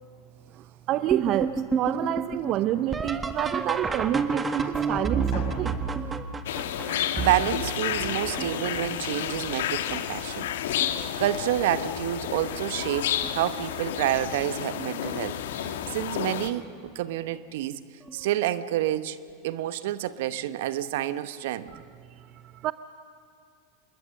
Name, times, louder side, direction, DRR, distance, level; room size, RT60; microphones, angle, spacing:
voice 1, 0.5-5.8 21.7-21.8 22.2-22.7, right 13 dB, 45° right, 14 dB, 0.6 m, -28 dB
sound 1, 1.1-8.8 9.4-10.0 10.4-11.1 12.3-12.4 13.2-13.5 15.6-15.8 18.1-18.2, right 4 dB, 20° right, 1.5 m, -31 dB
Drum, 5.3-7.3, left 6 dB, 55° left, 4.1 m, -42 dB
sound 2, 6.5-16.5, left 10 dB, 70° left, 1.3 m, -31 dB
voice 2, 7.2-10.5 11.2-17.8 18.1-19.2 19.4-21.7, right 13 dB, 65° right, 14 dB, 1.0 m, -28 dB
28.0 x 21.0 x 6.6 m, 2.4 s
hypercardioid pair, 90°, 0 cm